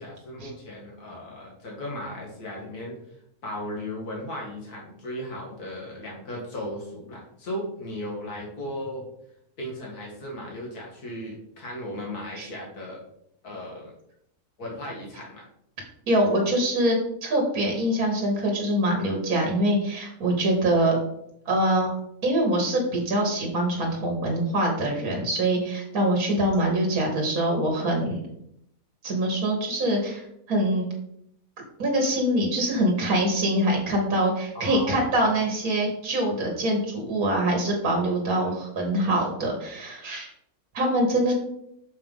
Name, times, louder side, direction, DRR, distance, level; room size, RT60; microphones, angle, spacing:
voice 1, 0.0-3.0 3.4-9.0 9.6-13.0 13.4-13.9 14.6-15.5 34.5-35.2 38.3-38.5, left 1 dB, 75° left, -3 dB, 2.3 m, -36 dB
voice 2, 16.1-21.0 21.5-21.9 22.2-28.2 29.0-30.9 31.8-40.3 40.7-41.3, right 1 dB, 65° right, 0 dB, 1.9 m, -24 dB
6.6 x 3.6 x 5.4 m, 0.75 s
omnidirectional pair, 1.6 m